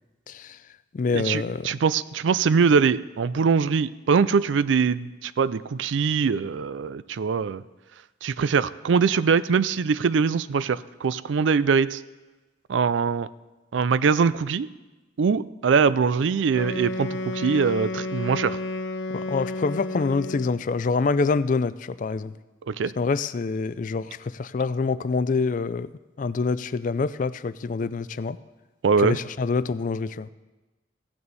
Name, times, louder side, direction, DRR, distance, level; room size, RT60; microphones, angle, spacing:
voice 1, 0.3-0.6 0.9-1.7 19.3-22.3 23.0-25.9 26.2-28.4 29.0-30.3, left 4 dB, 45° left, 16 dB, 0.4 m, -26 dB
voice 2, 1.1-7.6 8.2-12.0 12.7-13.3 13.7-14.7 15.2-18.6 22.7-22.9 28.8-29.2, right 5 dB, 90° right, 17 dB, 0.4 m, -22 dB
Wind instrument woodwind instrument, 16.5-20.7, left 2 dB, 85° left, 0.8 m, -31 dB
16.0 x 9.5 x 4.1 m, 1.1 s
head